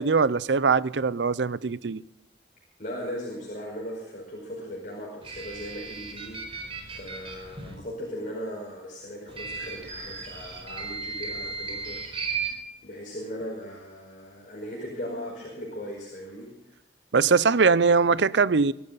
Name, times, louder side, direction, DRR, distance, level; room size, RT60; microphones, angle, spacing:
voice 1, 0.0-2.0 17.1-18.7, right 5 dB, 75° right, 0.6 m, -21 dB
voice 2, 2.8-12.4 12.8-16.5, equal, 50° left, 5.1 m, -38 dB
sound 1, 5.2-7.7 9.3-12.5, right 5 dB, 35° right, 4.5 m, -35 dB
23.0 x 13.0 x 4.1 m
head